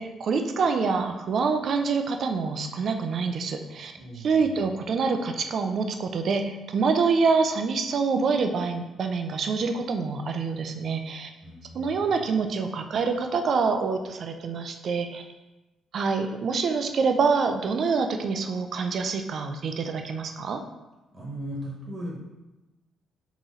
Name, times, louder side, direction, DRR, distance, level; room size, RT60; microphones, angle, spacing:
voice 1, 0.0-11.3 11.7-15.2 15.9-20.6, right 4 dB, 45° right, 6 dB, 0.4 m, -26 dB
voice 2, 4.0-4.7 11.4-12.2 21.1-22.2, right 1 dB, 20° right, -5 dB, 1.1 m, -38 dB
4.0 x 2.9 x 3.7 m, 1.1 s
cardioid pair, 165°, 0 cm